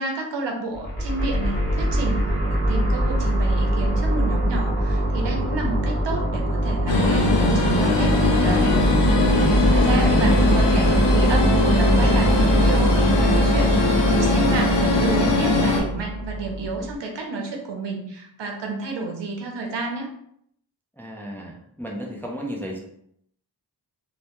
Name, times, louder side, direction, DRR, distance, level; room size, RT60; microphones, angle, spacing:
voice 1, 0.0-8.8 9.3-20.1, right 3 dB, 85° right, 2 dB, 0.6 m, -30 dB
sound 1, 0.7-16.9, right 1 dB, 20° left, 1.0 m, -22 dB
sound 2, 6.9-15.8, left 2 dB, 85° left, 0.6 m, -20 dB
voice 2, 9.3-10.1 21.0-22.8, equal, 5° left, -1 dB, 0.3 m, -33 dB
2.1 x 2.1 x 2.9 m, 0.71 s
wide cardioid pair, 100°, 42 cm